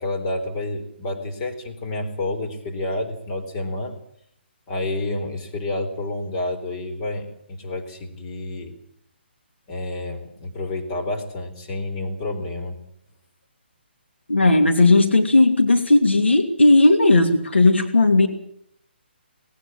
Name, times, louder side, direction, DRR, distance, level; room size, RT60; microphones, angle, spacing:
voice 1, 0.0-4.0 4.7-8.7 9.7-12.8, left 2 dB, 30° left, 4 dB, 4.2 m, -29 dB
voice 2, 14.3-18.3, left 2 dB, 85° left, 5 dB, 2.7 m, -16 dB
19.0 x 18.5 x 8.8 m, 0.70 s
figure-of-eight pair, 140°, 6 cm